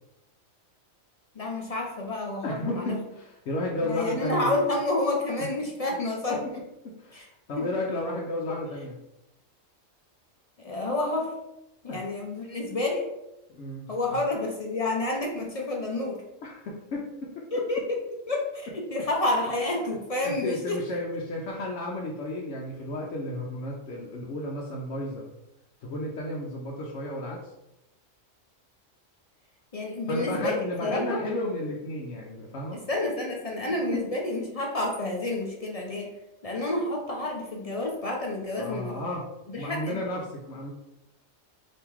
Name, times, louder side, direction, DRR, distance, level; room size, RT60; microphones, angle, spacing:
voice 1, 1.3-3.0 3.8-6.4 7.1-7.3 7.6-7.7 10.6-11.3 11.8-13.1 13.9-16.2 17.5-18.0 18.3-20.8 29.7-31.2 32.7-36.1 36.4-39.0 39.5-40.0, left 2 dB, 45° left, 0 dB, 0.4 m, -29 dB
voice 2, 2.4-4.5 5.4-5.5 6.8-9.0 11.9-12.0 13.5-14.2 16.4-17.5 20.2-25.3 25.8-27.4 30.1-32.8 33.9-34.0 38.6-39.3 39.6-40.7, left 1 dB, 65° left, -2 dB, 0.9 m, -33 dB
3.7 x 2.8 x 4.4 m, 0.89 s
omnidirectional pair, 1.4 m